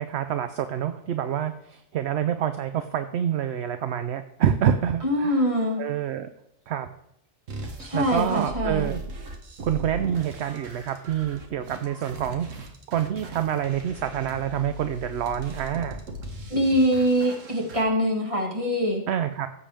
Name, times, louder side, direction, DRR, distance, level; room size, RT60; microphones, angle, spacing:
voice 1, 0.0-5.5 5.8-6.3 6.7-6.9 7.9-9.0 9.6-16.0 19.1-19.5, right 9 dB, 65° right, 9 dB, 0.8 m, -27 dB
voice 2, 5.0-5.8 7.8-8.9 16.5-19.0, equal, 25° right, 0 dB, 1.9 m, -23 dB
sound 1, 7.5-17.8, right 1 dB, 85° right, 1.5 m, -39 dB
15.0 x 7.3 x 3.4 m, 0.75 s
omnidirectional pair, 1.3 m